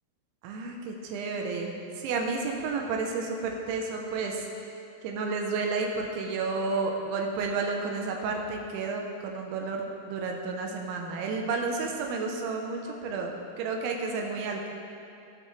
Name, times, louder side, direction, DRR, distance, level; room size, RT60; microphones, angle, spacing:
voice 1, 0.4-4.5 5.0-14.7, right 4 dB, 85° right, 1 dB, 3.3 m, -31 dB
17.5 x 6.3 x 3.3 m, 2.6 s
omnidirectional pair, 5.3 m